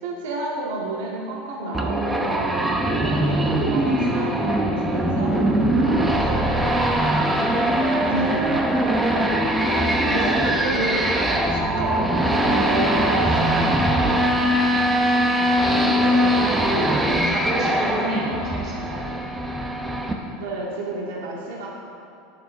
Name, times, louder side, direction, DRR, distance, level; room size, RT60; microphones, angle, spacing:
voice 1, 0.0-7.2 7.8-8.7 10.0-13.9 15.5-16.5 20.4-21.7, right 2 dB, 85° right, -4 dB, 1.9 m, -31 dB
sound 1, 1.7-20.1, right 1 dB, 10° right, 1.0 m, -21 dB
voice 2, 9.8-10.2 15.3-16.6 17.0-19.2, right 1 dB, 35° right, -6 dB, 2.8 m, -31 dB
17.5 x 7.2 x 3.8 m, 2.6 s
supercardioid pair, 135°, 0 cm